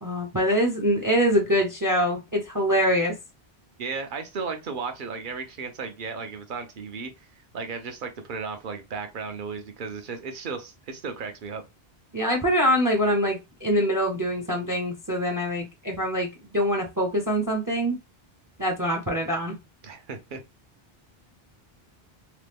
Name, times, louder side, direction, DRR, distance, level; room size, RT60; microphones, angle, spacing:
voice 1, 0.0-3.1 12.1-16.3 16.5-18.0 18.6-19.6, equal, 25° right, 0.6 m, -24 dB
voice 2, 3.8-7.1 7.5-11.7 19.8-20.4, right 5 dB, 55° right, 0.8 m, -35 dB
2.9 x 2.2 x 3.4 m
omnidirectional pair, 1.1 m